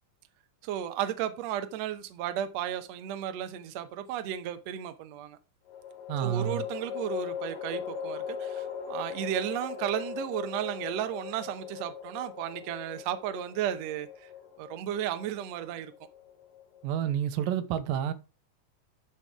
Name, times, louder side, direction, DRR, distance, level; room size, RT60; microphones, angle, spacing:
voice 1, 0.6-5.4 6.2-14.3 14.6-15.9, right 11 dB, 70° right, 1.7 m, -34 dB
sound 1, 2.6-3.4 5.7-17.0, left 8 dB, 85° left, 3.6 m, -39 dB
voice 2, 6.1-6.7 16.8-18.1, right 10 dB, 85° right, 2.5 m, -29 dB
12.0 x 4.1 x 4.8 m
omnidirectional pair, 3.9 m